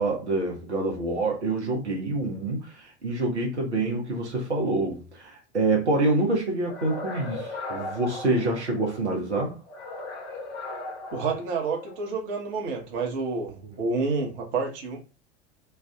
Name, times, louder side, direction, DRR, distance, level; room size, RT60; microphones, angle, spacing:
voice 1, 0.0-9.6, right 2 dB, 80° right, 1.0 m, -26 dB
sound 1, 6.7-9.1 9.7-12.1, left 2 dB, 50° left, 1.3 m, -37 dB
voice 2, 11.1-15.0, right 4 dB, 50° right, 1.2 m, -29 dB
3.2 x 2.4 x 3.5 m
figure-of-eight pair, 80°, 34 cm